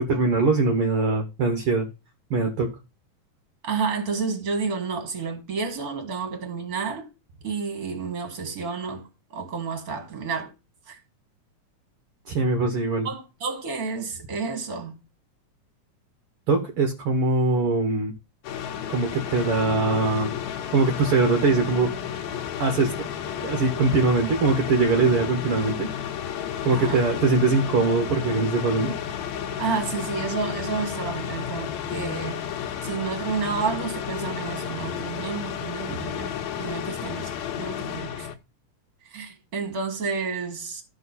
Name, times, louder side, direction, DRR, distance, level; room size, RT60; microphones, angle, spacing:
voice 1, 0.0-1.9 2.3-2.7 12.3-13.1 16.5-18.1 18.9-20.3 20.7-21.9 22.3-23.1 23.4-25.9 26.6-28.9 35.9-36.0, right 3 dB, 55° right, 1.7 m, -22 dB
voice 2, 3.6-7.1 7.4-10.5 10.9-11.0 13.0-14.9 26.7-27.0 29.6-32.4 32.8-38.3 39.0-40.8, right 5 dB, 30° right, 2.1 m, -30 dB
sound 1, 18.4-38.4, left 9 dB, 70° left, 2.1 m, -32 dB
13.0 x 4.7 x 4.1 m
omnidirectional pair, 3.6 m